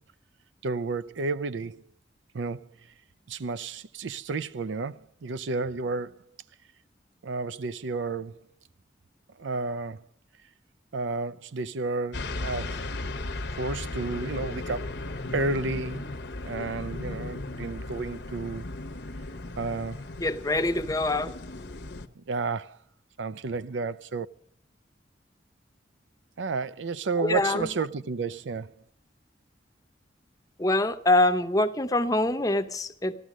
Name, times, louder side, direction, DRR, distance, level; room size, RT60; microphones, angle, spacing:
voice 1, 0.6-1.8 2.3-2.7 3.3-6.3 7.2-8.4 9.4-10.0 10.9-12.8 13.6-14.9 15.3-16.1 16.4-18.7 19.6-20.0 22.2-22.8 23.2-24.3 26.4-28.7, right 3 dB, 85° right, 0.5 m, -31 dB
sound 1, 12.1-22.1, left 2 dB, 65° left, 0.9 m, -36 dB
voice 2, 20.2-21.3 27.2-27.7 30.6-33.1, left 2 dB, 20° left, 0.7 m, -24 dB
14.5 x 12.0 x 6.2 m
head